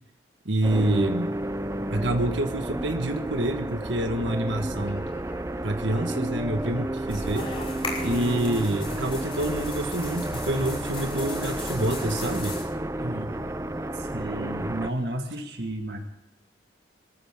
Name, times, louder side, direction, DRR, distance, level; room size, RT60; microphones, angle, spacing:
voice 1, 0.4-1.3 1.9-5.1 5.6-7.5 8.0-12.6, right 1 dB, 75° right, 5 dB, 1.5 m, -27 dB
sound 1, 0.6-14.9, right 1 dB, 15° right, 0.5 m, -31 dB
sound 2, 4.9-5.6 5.9-7.7 8.1-8.4 8.9-9.5 9.9-10.7 11.2-11.8 12.2-12.4 13.0-13.5 13.9-14.0, left 2 dB, 75° left, 2.3 m, -50 dB
sound 3, 7.1-12.6, left 2 dB, 30° left, 5.7 m, -37 dB
voice 2, 13.0-13.3 13.9-16.0, right 1 dB, 55° right, 3 dB, 2.0 m, -32 dB
21.5 x 14.5 x 3.7 m, 0.89 s
head